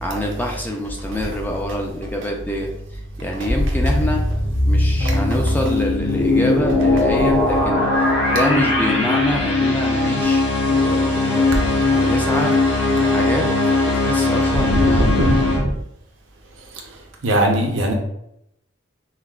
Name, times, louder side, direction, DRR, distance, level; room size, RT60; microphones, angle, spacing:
voice 1, 0.0-2.7 3.2-4.2 4.7-7.8 8.3-12.5 12.8-13.5 13.8-15.4, left 1 dB, 10° left, 0 dB, 0.4 m, -26 dB
sound 1, 3.5-15.6, left 2 dB, 65° left, 1.3 m, -19 dB
voice 2, 14.7-15.6 17.2-17.9, right 1 dB, 75° right, 1 dB, 0.7 m, -19 dB
5.6 x 2.1 x 2.4 m, 0.79 s
head